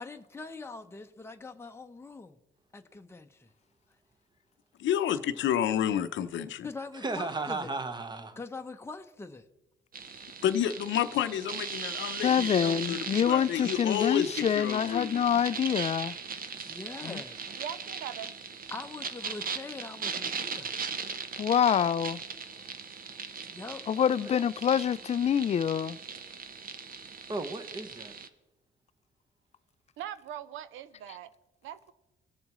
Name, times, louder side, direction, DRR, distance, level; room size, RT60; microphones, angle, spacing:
voice 1, 0.0-2.4 2.7-3.5 6.6-7.8 8.4-9.5 16.7-17.6 18.7-20.7 23.5-23.8, left 3 dB, 10° left, 0.7 m, -43 dB
voice 2, 4.8-6.7 10.4-15.2, left 10 dB, 70° left, 0.7 m, -30 dB
voice 3, 6.9-8.4 24.2-24.3 27.3-28.1, right 3 dB, 20° right, 1.0 m, -35 dB
sound 1, 9.9-28.3, right 5 dB, 45° right, 0.8 m, -39 dB
voice 4, 12.2-16.2 17.0-17.2 21.4-22.2 23.9-26.0, left 8 dB, 35° left, 0.3 m, -26 dB
voice 5, 17.6-18.4 30.0-31.3 31.6-31.9, right 10 dB, 90° right, 0.6 m, -41 dB
19.0 x 7.2 x 3.1 m
cardioid pair, 90°, 20 cm